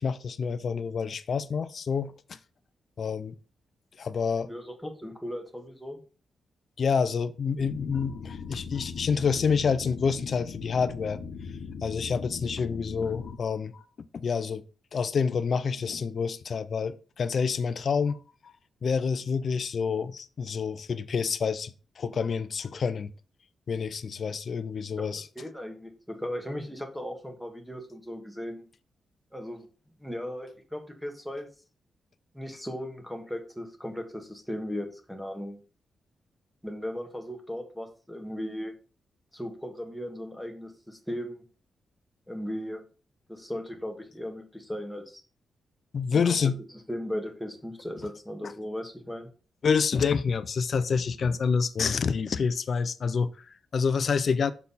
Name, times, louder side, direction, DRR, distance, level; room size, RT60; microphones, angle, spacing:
voice 1, 0.0-2.1 3.0-3.4 4.0-4.5 6.8-11.2 11.8-13.8 14.1-14.6 14.9-18.5 18.8-21.7 22.0-23.1 23.7-25.2 45.9-46.6 48.4-48.5 49.6-54.5, left 6 dB, 50° left, 0.5 m, -28 dB
voice 2, 4.5-6.0 25.0-25.1 25.3-28.6 29.3-29.7 30.0-31.5 32.3-35.6 36.6-38.7 39.3-41.4 42.3-42.8 43.3-45.2 46.1-46.4 46.9-49.3, equal, ahead, 1.3 m, -37 dB
sound 1, 7.6-13.4, left 5 dB, 80° left, 1.1 m, -39 dB
6.5 x 5.5 x 4.2 m
wide cardioid pair, 135°, 0 cm